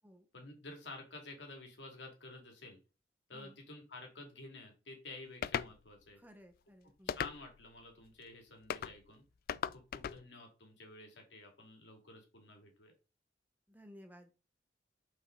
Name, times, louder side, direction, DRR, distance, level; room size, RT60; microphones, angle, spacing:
voice 1, 0.3-2.8 3.3-6.2 7.0-9.2 9.7-12.9, left 2 dB, 70° left, 2 dB, 2.3 m, -51 dB
sound 1, 5.4-5.7 7.1-7.7 8.7-8.9 9.5-10.2, left 8 dB, 55° left, 0.3 m, -37 dB
voice 2, 6.2-7.2 13.7-14.3, equal, 10° right, 5 dB, 1.0 m, -57 dB
5.6 x 5.2 x 3.8 m, 0.32 s
head